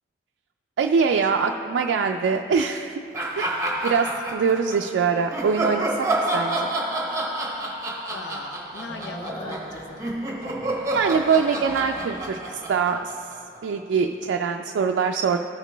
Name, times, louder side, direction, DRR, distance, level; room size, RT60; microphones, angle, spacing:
voice 1, 0.8-2.9 3.4-6.7 10.9-13.2 13.6-15.4, right 5 dB, 85° right, 3 dB, 0.3 m, -23 dB
sound 1, 3.1-4.8 5.3-13.6, right 1 dB, 15° right, 0.8 m, -29 dB
sound 2, 7.0-7.1 7.6-7.7 8.0-8.2 8.5-12.3, equal, 20° left, 0.9 m, -40 dB
voice 2, 8.1-10.2, left 3 dB, 70° left, 3 dB, 0.6 m, -38 dB
14.5 x 5.0 x 3.3 m, 2.7 s
head